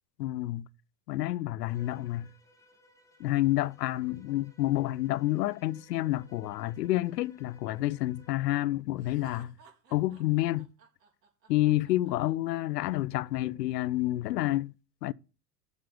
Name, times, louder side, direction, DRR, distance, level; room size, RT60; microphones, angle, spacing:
voice 1, 0.2-0.7 1.1-2.3 3.2-9.5 9.9-10.7 11.5-14.7 15.0-15.1, left 16 dB, 80° left, 0.6 m, -29 dB
Bowed string instrument, 1.7-8.4, left 1 dB, 5° left, 2.3 m, -62 dB
Laughter, 9.0-12.9, right 6 dB, 85° right, 4.2 m, -57 dB
7.5 x 7.1 x 7.0 m
hypercardioid pair, 95°, 48 cm